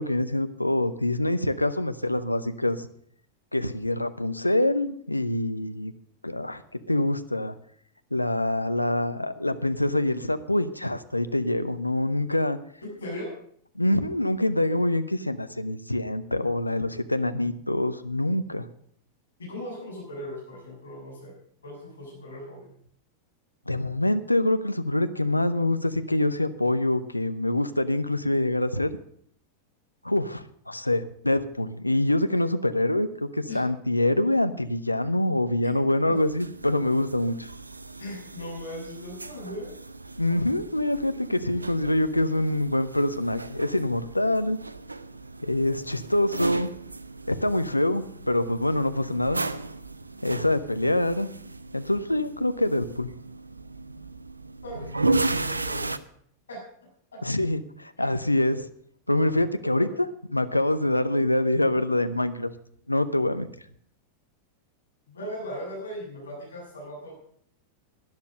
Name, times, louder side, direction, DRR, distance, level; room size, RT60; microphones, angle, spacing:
voice 1, 0.0-2.9 3.5-5.9 6.2-6.6 6.9-7.5 8.1-12.6 13.8-18.7 23.7-28.9 30.0-37.5 40.2-44.6 45.4-46.7 47.3-49.4 50.2-51.3 51.7-53.1 57.2-58.7 59.1-59.9 60.3-62.5 62.9-63.5, left 1 dB, 85° left, 11 dB, 0.7 m, -25 dB
voice 2, 12.8-13.2 19.4-22.7 33.5-33.6 36.0-36.2 38.0-39.7 54.6-56.0 56.5-56.6 57.1-57.2 58.0-58.1 59.7-59.8 65.1-67.2, left 1 dB, 70° left, -4 dB, 6.9 m, -38 dB
sound 1, 36.2-56.0, right 2 dB, 80° right, 0.5 m, -35 dB
12.0 x 10.5 x 6.4 m, 0.64 s
figure-of-eight pair, 90°, 0 cm